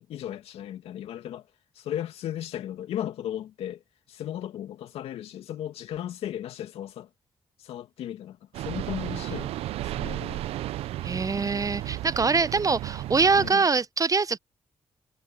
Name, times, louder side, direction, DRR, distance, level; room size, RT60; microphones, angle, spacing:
voice 1, 0.0-1.5 1.8-3.8 4.1-7.1 7.6-9.5 9.8-10.4 13.3-13.6, left 11 dB, 80° left, 2.3 m, -36 dB
sound 1, 8.5-13.5, right 14 dB, 80° right, 0.6 m, -34 dB
voice 2, 11.0-14.4, right 4 dB, 35° right, 0.8 m, -24 dB
supercardioid pair, 45°, 10 cm